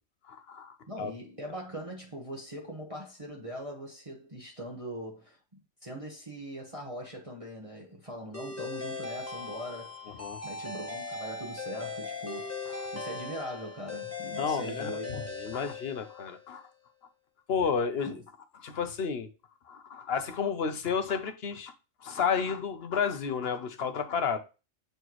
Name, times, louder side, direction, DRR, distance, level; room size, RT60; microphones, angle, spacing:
voice 1, 0.3-1.1 10.2-10.4 14.4-16.6 17.5-18.2 18.6-19.3 19.7-21.7 22.0-24.4, left 6 dB, 55° left, 1.0 m, -31 dB
voice 2, 0.9-10.0 10.4-15.2 18.1-18.2, equal, 25° right, 1.3 m, -41 dB
sound 1, 8.3-16.5, left 4 dB, 10° left, 1.0 m, -39 dB
7.9 x 4.4 x 3.1 m
omnidirectional pair, 1.4 m